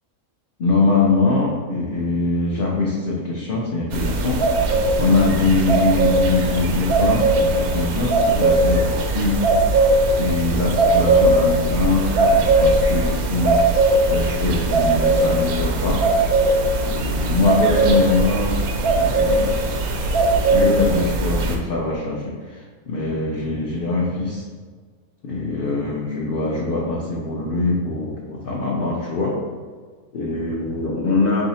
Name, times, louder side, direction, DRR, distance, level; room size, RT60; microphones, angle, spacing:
voice 1, 0.6-9.8 10.2-16.0 16.9-19.5 20.5-24.4 25.2-29.3 30.1-31.4, left 3 dB, 60° left, -4 dB, 0.6 m, -23 dB
sound 1, 3.9-21.6, right 2 dB, 90° right, 1.1 m, -19 dB
3.8 x 2.7 x 4.1 m, 1.5 s
omnidirectional pair, 1.5 m